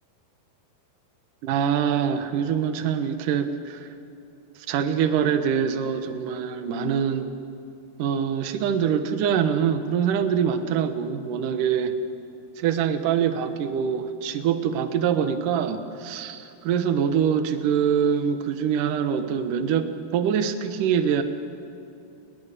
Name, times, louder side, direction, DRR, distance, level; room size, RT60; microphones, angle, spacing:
voice 1, 1.4-3.9 4.7-7.3 8.0-12.0 12.6-21.2, right 8 dB, 65° right, 9 dB, 2.2 m, -24 dB
29.5 x 21.5 x 6.7 m, 2.8 s
omnidirectional pair, 5.3 m